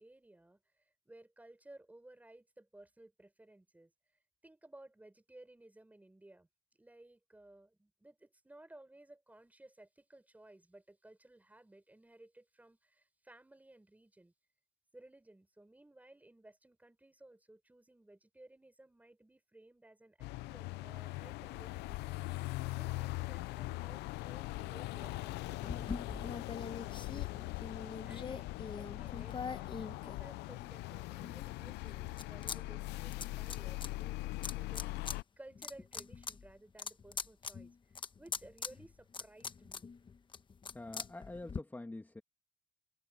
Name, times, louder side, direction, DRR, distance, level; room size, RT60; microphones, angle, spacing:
voice 1, 0.0-3.9 4.4-6.5 6.8-14.3 14.9-22.3 22.8-27.6 27.9-39.9, right 1 dB, 10° right, 4.5 m, -58 dB
sound 1, 20.2-35.2, left 21 dB, 85° left, 0.4 m, -41 dB
sound 2, 25.6-30.7 31.2-32.6 32.8-33.9 34.4-35.2 35.5-41.6, left 5 dB, 30° left, 1.3 m, -43 dB
voice 2, 40.7-42.2, left 2 dB, 10° left, 2.2 m, -46 dB
cardioid pair, 110°, 17 cm